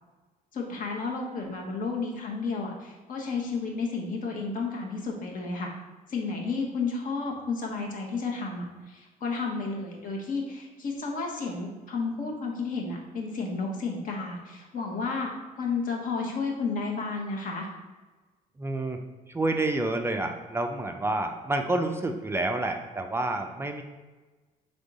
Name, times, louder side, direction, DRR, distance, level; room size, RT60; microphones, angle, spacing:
voice 1, 0.5-5.7 6.1-15.3 15.6-17.7, left 4 dB, 55° left, 0 dB, 1.1 m, -32 dB
voice 2, 18.6-19.0 19.3-23.8, right 2 dB, 15° right, 5 dB, 0.3 m, -29 dB
3.6 x 3.5 x 4.0 m, 1.3 s
cardioid pair, 110°, 17 cm